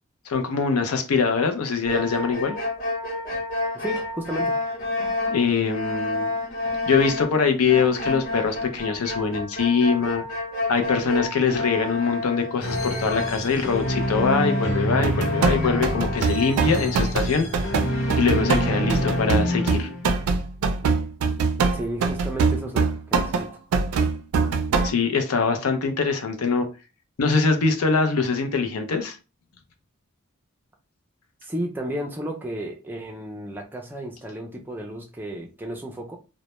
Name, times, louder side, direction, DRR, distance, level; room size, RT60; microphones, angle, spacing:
voice 1, 0.3-2.6 5.3-6.3 6.9-10.2 10.7-17.5 18.2-19.9 24.8-26.7 27.2-29.2, left 5 dB, 85° left, 0.5 m, -23 dB
sound 1, 1.8-17.2 17.5-17.6 18.0-19.2, left 2 dB, 40° left, 0.6 m, -30 dB
voice 2, 3.7-4.6 21.7-23.5 31.4-36.2, right 1 dB, 10° right, 0.3 m, -33 dB
sound 2, 12.6-20.3, equal, 65° left, 0.9 m, -27 dB
sound 3, 15.0-24.9, right 4 dB, 90° right, 0.4 m, -23 dB
2.1 x 2.1 x 2.8 m
head